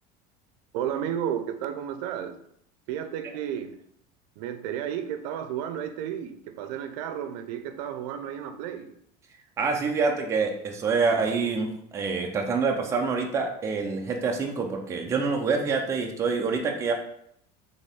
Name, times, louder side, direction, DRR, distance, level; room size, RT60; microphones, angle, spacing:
voice 1, 0.7-2.4 2.9-3.7 4.4-8.9, right 9 dB, 80° right, 9 dB, 0.6 m, -32 dB
voice 2, 9.6-16.9, right 4 dB, 15° right, 1 dB, 0.5 m, -26 dB
4.2 x 3.5 x 3.5 m, 0.71 s
cardioid pair, 165°, 21 cm